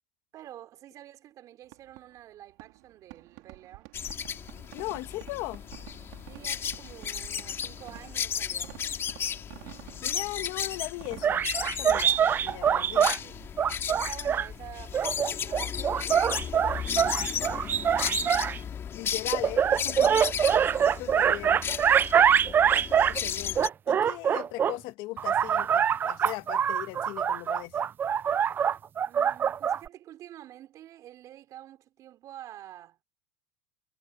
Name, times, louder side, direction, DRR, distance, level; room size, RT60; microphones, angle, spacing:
voice 1, 0.3-3.9 6.3-8.8 12.9-13.4 13.9-17.9 20.6-21.5 23.4-23.6 29.1-33.0, right 12 dB, 40° right, 4.8 m, -48 dB
Fireworks, 1.6-15.2, right 24 dB, 70° right, 3.3 m, -51 dB
sound 1, 3.9-23.7, left 8 dB, 30° left, 2.5 m, -35 dB
voice 2, 4.7-5.6 10.0-11.4 11.8-13.1 18.9-20.3 21.0-21.6 23.1-23.6 23.9-27.8, left 20 dB, 55° left, 1.5 m, -38 dB
sound 2, 11.2-13.2 13.6-14.5 14.9-18.6 19.3-23.2 23.5-24.7 25.2-29.9, right 8 dB, 25° right, 0.4 m, -24 dB
supercardioid pair, 130°, 9 cm